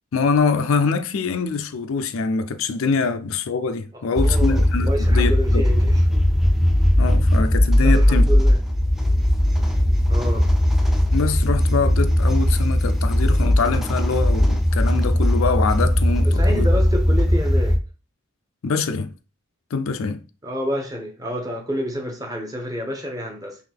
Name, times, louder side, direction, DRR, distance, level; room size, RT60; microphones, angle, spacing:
voice 1, 0.1-5.6 7.0-8.3 11.1-16.7 18.6-19.1 19.7-20.2, left 4 dB, 75° left, 0.5 m, -24 dB
voice 2, 3.9-6.0 7.8-8.6 10.1-10.5 16.2-17.8 20.4-23.6, equal, 15° right, 0.8 m, -29 dB
sound 1, 4.2-17.8, left 1 dB, ahead, 0.4 m, -18 dB
3.7 x 3.1 x 3.4 m
head